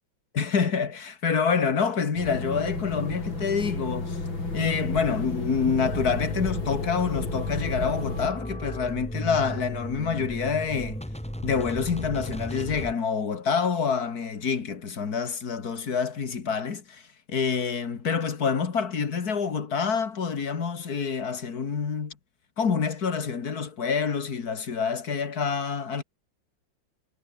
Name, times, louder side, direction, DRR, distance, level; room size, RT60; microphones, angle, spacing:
voice 1, 0.4-4.2 4.5-11.0 11.4-17.0 17.3-22.1 22.6-26.0, left 6 dB, 50° left, 2.5 m, -27 dB
sound 1, 2.2-8.3, left 3 dB, 85° left, 7.0 m, -32 dB
sound 2, 5.8-12.9, equal, 5° left, 4.1 m, -35 dB
omnidirectional pair, 2.1 m